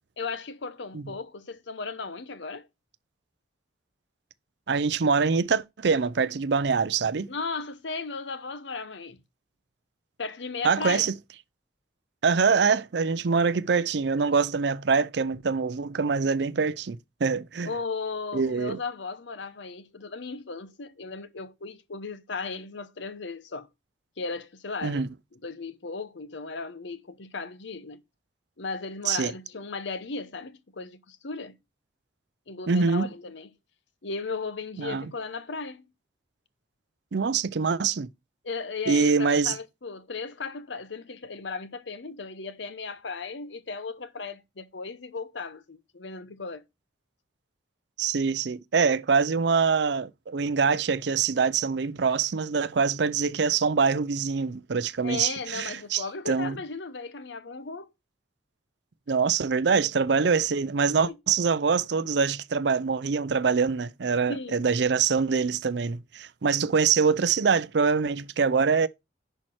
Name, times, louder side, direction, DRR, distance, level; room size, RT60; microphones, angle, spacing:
voice 1, 0.2-2.7 7.3-9.2 10.2-11.1 17.6-23.7 24.2-25.1 25.3-28.0 28.6-31.6 32.5-33.5 34.0-35.9 38.4-46.6 55.0-57.9 61.0-61.1 64.3-64.7, left 4 dB, 70° left, 0.8 m, -36 dB
voice 2, 4.7-7.3 10.6-11.1 12.2-17.7 18.3-18.8 24.8-25.1 29.1-29.3 32.7-33.1 34.8-35.1 37.1-38.1 38.9-39.5 48.0-56.6 59.1-68.9, right 5 dB, 60° right, 0.5 m, -24 dB
10.5 x 4.5 x 4.4 m
head